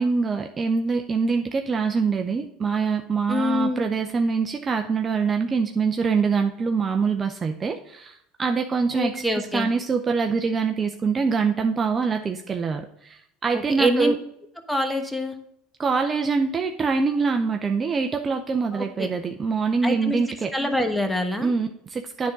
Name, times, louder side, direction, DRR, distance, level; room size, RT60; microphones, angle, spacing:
voice 1, 0.0-14.2 15.8-20.5 21.4-22.3, right 5 dB, 25° right, 5 dB, 0.6 m, -24 dB
voice 2, 3.3-3.8 8.9-9.7 13.8-14.1 14.7-15.4 18.7-19.1 19.8-20.2 20.5-21.5, left 1 dB, ahead, 5 dB, 1.1 m, -25 dB
9.4 x 3.7 x 5.2 m, 0.74 s
supercardioid pair, 95°, 0 cm